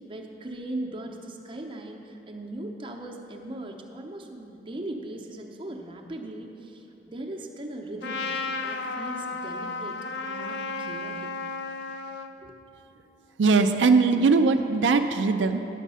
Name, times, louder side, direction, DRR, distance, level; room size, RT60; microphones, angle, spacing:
voice 1, 0.1-11.4 12.4-12.6, right 1 dB, 30° right, 1 dB, 0.7 m, -39 dB
Trumpet, 8.0-12.3, left 3 dB, 70° left, 0.5 m, -33 dB
voice 2, 13.4-15.6, right 4 dB, 85° right, 7 dB, 0.4 m, -20 dB
10.0 x 7.2 x 5.5 m, 2.8 s
head